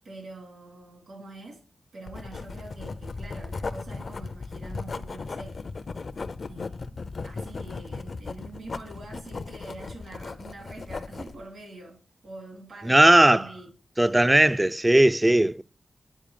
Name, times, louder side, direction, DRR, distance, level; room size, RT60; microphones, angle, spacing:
voice 1, 0.0-1.6 1.9-5.6 6.5-7.0 7.2-12.0 12.2-13.7, right 2 dB, 80° right, 2.9 m, -45 dB
Writing, 2.1-11.4, left 4 dB, 60° left, 0.5 m, -37 dB
voice 2, 12.9-13.5 14.0-15.6, right 1 dB, 15° right, 0.3 m, -18 dB
8.9 x 4.9 x 5.1 m
wide cardioid pair, 80°, 0 cm